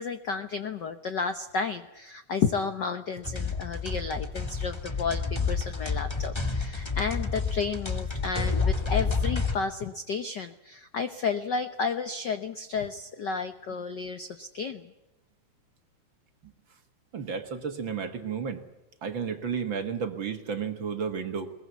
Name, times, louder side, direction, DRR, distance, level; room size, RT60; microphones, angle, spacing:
voice 1, 0.0-14.9, left 5 dB, 70° left, 10 dB, 1.0 m, -32 dB
sound 1, 3.2-9.6, left 4 dB, 15° left, 0.9 m, -29 dB
voice 2, 17.1-18.6 19.0-21.5, right 6 dB, 45° right, 7 dB, 2.0 m, -32 dB
22.0 x 21.0 x 8.2 m, 1.0 s
omnidirectional pair, 3.3 m